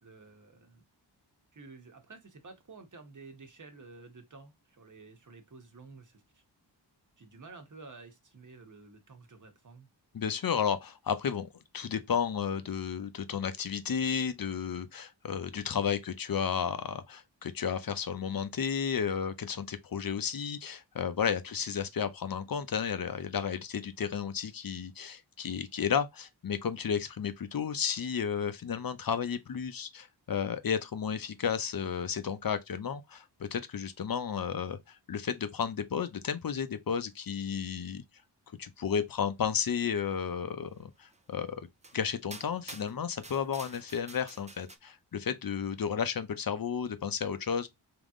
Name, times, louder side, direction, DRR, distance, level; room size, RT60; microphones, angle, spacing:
voice 1, 0.0-0.8 1.5-6.4 7.2-9.9, right 3 dB, 45° right, 1.2 m, -51 dB
voice 2, 10.1-38.0 38.6-41.7 41.9-47.7, left 7 dB, 50° left, 0.7 m, -33 dB
sound 1, 41.1-41.2 41.8-42.0 42.3-44.8, right 2 dB, 15° right, 0.6 m, -49 dB
3.6 x 3.0 x 3.6 m
wide cardioid pair, 75°, 43 cm